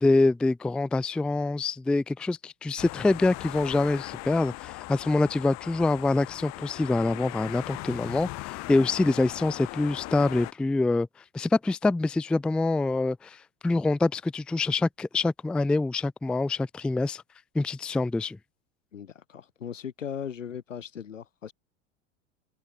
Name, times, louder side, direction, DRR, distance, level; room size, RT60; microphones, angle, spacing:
voice 1, 0.0-11.1 11.3-17.2 17.5-18.4, left 2 dB, 5° left, 0.4 m, -25 dB
sound 1, 2.8-10.5, left 23 dB, 45° left, 3.4 m, -39 dB
voice 2, 18.9-21.5, left 8 dB, 75° left, 2.8 m, -38 dB
figure-of-eight pair, 85°, 38 cm